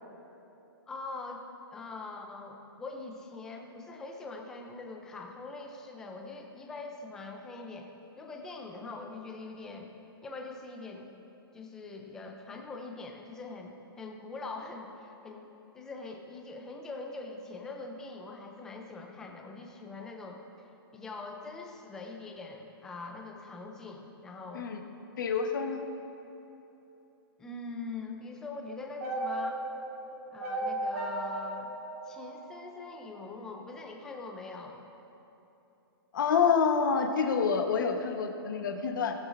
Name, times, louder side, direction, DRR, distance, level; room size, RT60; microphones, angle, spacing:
voice 1, 0.9-1.5 1.7-7.9 8.2-9.9 10.2-11.1 11.5-15.5 15.7-20.4 20.9-24.7 27.4-29.6 30.3-31.7 32.1-34.8, left 3 dB, 5° left, 2 dB, 0.4 m, -43 dB
voice 2, 25.2-25.8 36.1-39.1, left 6 dB, 50° left, 4 dB, 1.1 m, -27 dB
sound 1, 29.0-33.2, right 1 dB, 40° right, 2.4 m, -36 dB
19.0 x 7.8 x 2.5 m, 2.9 s
hypercardioid pair, 175°, 13 cm